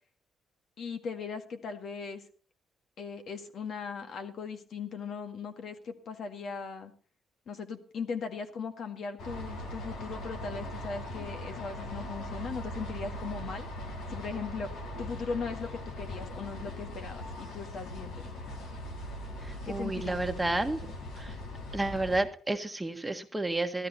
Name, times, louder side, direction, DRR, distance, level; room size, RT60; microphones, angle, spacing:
voice 1, 0.8-2.2 3.0-6.9 7.5-13.7 14.1-14.7 15.0-18.3 19.6-20.3, left 5 dB, 60° left, 7 dB, 1.9 m, -38 dB
sound 1, 9.2-22.2, left 1 dB, 85° left, 3.6 m, -40 dB
voice 2, 19.4-21.3 21.7-23.9, right 2 dB, 10° right, 6 dB, 1.4 m, -31 dB
15.0 x 13.0 x 4.2 m, 0.41 s
cardioid pair, 90°, 0 cm